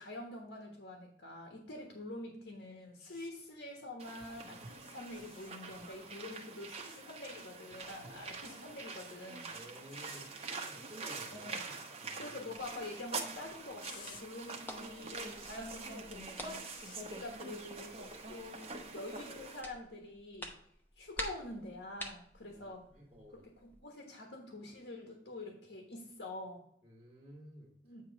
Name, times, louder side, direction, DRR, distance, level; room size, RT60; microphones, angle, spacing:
voice 1, 0.0-9.5 11.3-11.7 12.2-20.5 21.0-22.8 23.3-26.6 27.8-28.0, left 2 dB, 80° left, 0 dB, 1.3 m, -46 dB
sound 1, 3.0-3.3 5.1-5.5 6.8-7.0 9.9-10.3 13.8-14.2 15.4-15.6 16.6-17.0 18.5-18.7, left 7 dB, 45° left, 0.5 m, -55 dB
sound 2, 4.0-19.6, right 4 dB, 35° right, 0.9 m, -45 dB
voice 2, 9.5-12.4 22.5-23.4 26.8-27.7, equal, 20° right, -3 dB, 1.3 m, -54 dB
sound 3, 13.1-23.8, left 1 dB, 10° left, 0.8 m, -50 dB
9.0 x 3.1 x 5.8 m, 0.71 s
head